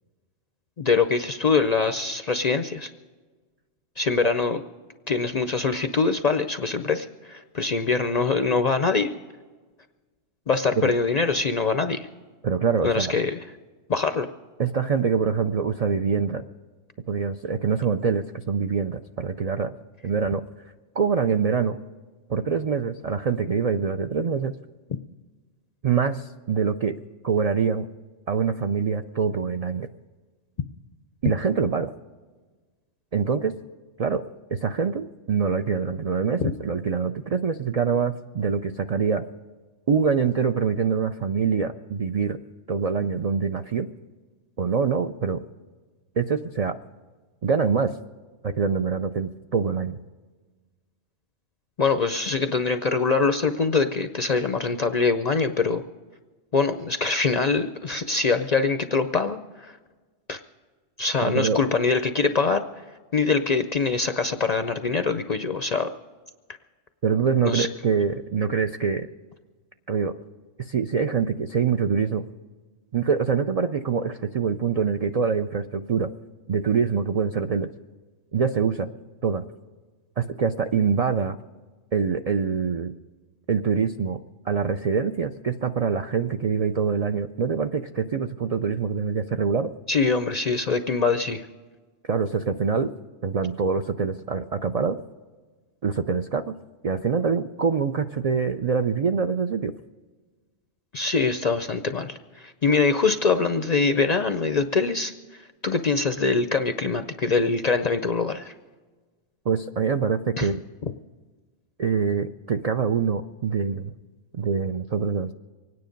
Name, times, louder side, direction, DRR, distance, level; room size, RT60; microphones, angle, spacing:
voice 1, 0.8-2.9 4.0-4.6 5.1-9.1 10.5-12.1 12.8-13.4 13.9-14.3 36.4-36.5 51.8-55.8 56.5-59.8 60.3-60.4 61.0-62.6 63.1-65.9 67.4-67.7 89.9-91.5 100.9-108.5 110.4-110.5, left 4 dB, 55° left, 9 dB, 0.4 m, -23 dB
voice 2, 12.4-13.1 14.6-16.4 17.1-19.7 20.0-20.4 21.0-21.8 22.3-24.5 25.8-26.9 27.2-27.9 28.3-29.9 31.2-31.9 33.1-33.6 34.0-34.2 34.5-39.2 39.9-42.4 42.7-43.9 44.6-45.4 46.2-46.8 47.4-47.9 48.4-50.0 61.2-61.6 67.0-69.1 69.9-70.1 70.6-72.2 72.9-76.1 76.5-77.7 78.3-78.9 79.2-79.4 80.2-81.4 81.9-82.9 83.5-84.2 84.5-89.7 92.1-92.9 93.2-95.0 95.8-96.5 96.8-99.7 109.5-110.6 111.8-113.9 114.3-115.3, right 6 dB, 70° right, 7 dB, 0.3 m, -24 dB
24.5 x 9.7 x 5.2 m, 1.4 s
omnidirectional pair, 1.3 m